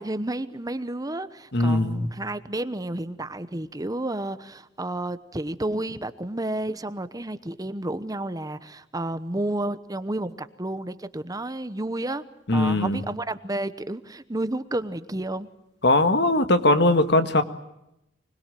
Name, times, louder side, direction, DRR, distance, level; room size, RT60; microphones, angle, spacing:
voice 1, 0.0-12.2 12.5-15.5, right 1 dB, 20° right, 13 dB, 1.0 m, -31 dB
voice 2, 1.5-2.1 12.5-13.0 15.8-17.4, left 2 dB, 65° left, 9 dB, 1.8 m, -20 dB
25.0 x 21.0 x 9.2 m, 0.88 s
head